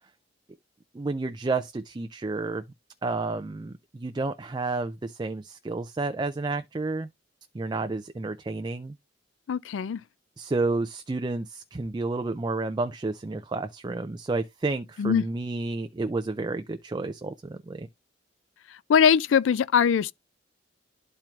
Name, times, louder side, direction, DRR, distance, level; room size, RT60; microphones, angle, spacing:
voice 1, 0.9-2.6 3.0-7.1 7.5-8.9 10.4-17.9, right 3 dB, 20° right, 0.4 m, -30 dB
voice 2, 9.5-10.0 15.0-15.2 18.9-20.1, left 7 dB, 80° left, 0.4 m, -21 dB
12.0 x 4.5 x 2.4 m
head